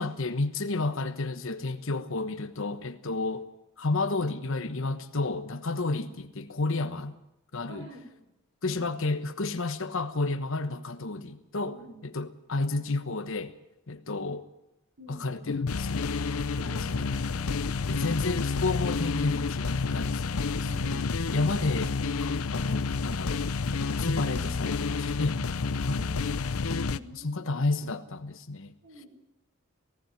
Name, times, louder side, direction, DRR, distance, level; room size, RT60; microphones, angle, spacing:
voice 1, 0.0-3.5 3.8-7.1 7.5-7.9 8.6-13.5 13.9-14.5 15.1-16.0 16.6-17.1 17.9-20.8 21.3-21.9 22.2-23.5 24.0-25.4 25.8-26.1 27.1-28.7, left 3 dB, 65° left, 1.2 m, -31 dB
voice 2, 7.7-8.2 8.6-9.0 11.7-12.0 15.0-15.3 16.6-17.9 18.2-18.5 20.5-21.5 24.4-24.6 25.9-26.3 26.8-27.6 28.8-29.1, right 1 dB, 65° right, 5.6 m, -48 dB
sound 1, 15.5-27.0, left 4 dB, 85° left, 0.7 m, -29 dB
18.0 x 16.0 x 9.2 m
head